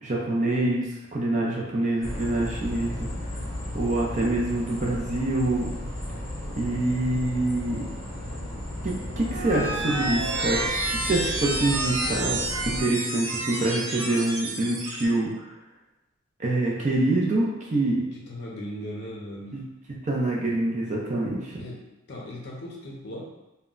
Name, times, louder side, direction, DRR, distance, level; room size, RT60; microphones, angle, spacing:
voice 1, 0.0-3.1 3.7-5.7 6.6-7.8 8.8-10.6 11.0-12.4 12.8-15.4 16.4-18.0 19.5-19.6 20.0-21.6, right 2 dB, 35° right, -3 dB, 0.5 m, -26 dB
sound 1, 2.0-12.8, left 1 dB, 20° left, 0.8 m, -35 dB
sound 2, 9.1-15.1, right 2 dB, 85° right, 0.7 m, -30 dB
voice 2, 18.1-19.6 21.6-21.8 22.1-23.2, equal, 55° left, -3 dB, 0.6 m, -38 dB
2.1 x 2.1 x 3.7 m, 0.97 s
head